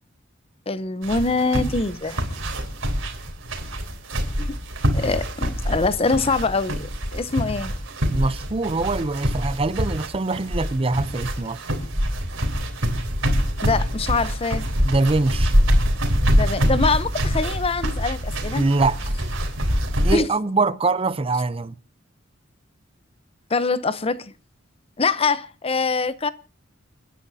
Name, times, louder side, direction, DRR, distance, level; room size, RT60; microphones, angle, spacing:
voice 1, 0.7-2.2 4.4-4.6 4.9-7.7 13.6-14.6 16.3-18.6 20.1-20.3 23.5-24.3 25.0-26.3, left 3 dB, 30° left, 0.7 m, -24 dB
sound 1, 1.0-20.1, equal, 75° right, 3.4 m, -24 dB
voice 2, 8.1-11.6 14.8-15.5 18.5-19.0 20.0-21.7, right 3 dB, 30° right, 0.6 m, -23 dB
30.0 x 10.0 x 2.7 m
head